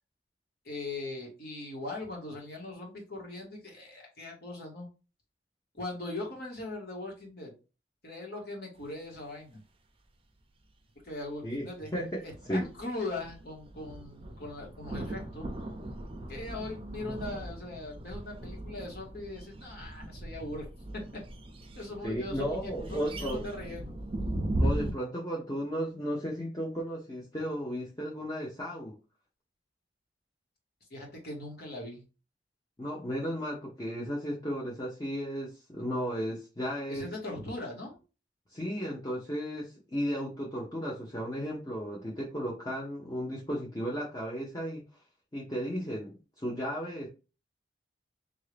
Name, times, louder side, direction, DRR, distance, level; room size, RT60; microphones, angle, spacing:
voice 1, 0.6-4.9 5.7-7.5 8.0-9.6 11.0-11.9 12.2-15.4 16.3-20.7 21.7-24.0 30.9-32.0 36.9-38.0, left 2 dB, 55° left, -1 dB, 1.6 m, -40 dB
sound 1, 12.2-24.9, right 1 dB, 30° right, 0.5 m, -37 dB
voice 2, 22.0-23.4 24.6-29.0 32.8-37.1 38.5-44.8 45.3-47.1, equal, 20° left, -3 dB, 0.8 m, -34 dB
3.7 x 2.7 x 3.3 m, 0.31 s
head